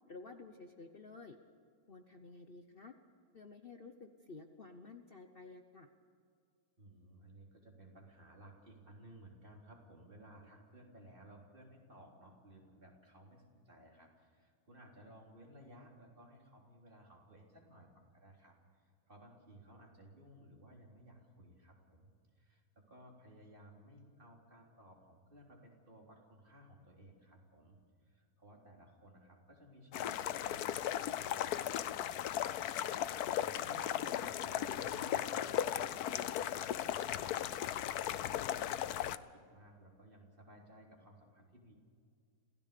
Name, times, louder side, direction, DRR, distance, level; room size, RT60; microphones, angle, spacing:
voice 1, 0.1-1.4 1.9-2.9 3.3-5.9 33.4-33.7, left 3 dB, 40° left, 6 dB, 1.1 m, -52 dB
voice 2, 6.8-32.2 32.4-32.5 32.9-36.9 37.2-38.8 39.2-41.8, right 1 dB, 35° right, -1 dB, 3.8 m, -58 dB
sound 1, 29.9-39.2, left 11 dB, 85° left, 1.2 m, -36 dB
27.0 x 16.5 x 6.8 m, 2.2 s
omnidirectional pair, 1.6 m